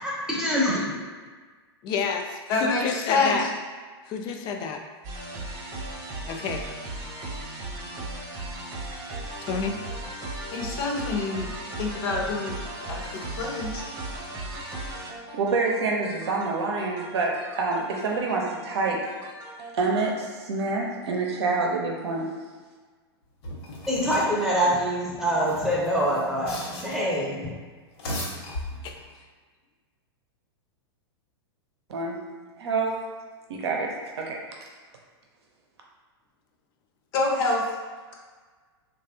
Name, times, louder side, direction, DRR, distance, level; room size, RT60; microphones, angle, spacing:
voice 1, 0.0-0.9 23.9-27.5, equal, 5° right, -6 dB, 0.6 m, -25 dB
voice 2, 1.8-3.5 4.1-4.8 6.3-6.6 9.4-9.8 14.6-14.7 28.8-28.9, left 5 dB, 35° left, 4 dB, 0.3 m, -29 dB
voice 3, 2.5-3.5 10.5-11.5 11.8-13.8 37.1-37.6, left 3 dB, 50° left, -1 dB, 0.7 m, -27 dB
sound 1, 5.0-20.1, right 2 dB, 35° right, 0.9 m, -37 dB
voice 4, 15.3-19.0 19.7-22.3 31.9-32.2 32.6-33.0 33.5-34.4, right 3 dB, 75° right, -1 dB, 0.7 m, -27 dB
sound 2, 23.4-24.4 25.3-27.2 27.8-29.1, left 1 dB, 65° left, 1.1 m, -36 dB
3.2 x 2.4 x 2.7 m, 1.5 s
hypercardioid pair, 120°, 14 cm